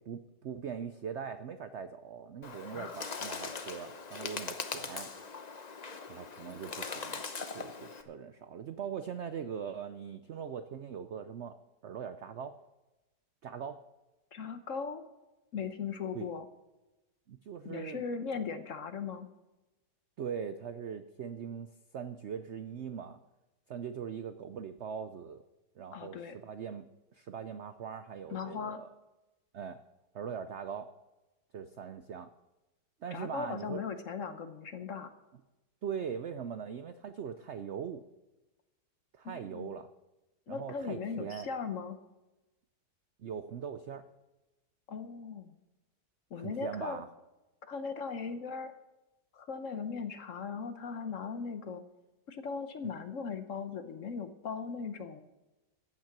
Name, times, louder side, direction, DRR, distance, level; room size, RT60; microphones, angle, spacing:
voice 1, 0.1-5.1 6.1-7.2 7.5-11.6 11.8-12.5 13.4-13.8 16.1-16.3 17.3-18.0 20.2-23.2 23.7-25.4 25.8-28.9 29.5-29.8 30.1-30.9 31.5-32.3 33.0-33.8 35.8-38.0 39.1-39.9 40.5-41.5 43.2-44.0 46.4-47.1, right 7 dB, 70° right, 10 dB, 0.6 m, -41 dB
Bird, 2.4-8.0, left 4 dB, 35° left, 0.6 m, -41 dB
voice 2, 14.3-15.0 15.5-16.5 17.6-19.3 25.9-26.4 28.3-28.8 33.1-35.1 39.2-39.7 40.5-42.0 44.9-45.5 46.3-47.0 47.7-48.7 49.3-51.8 52.3-55.2, left 5 dB, 55° left, 9 dB, 1.1 m, -38 dB
15.0 x 9.1 x 6.0 m, 1.0 s
omnidirectional pair, 1.8 m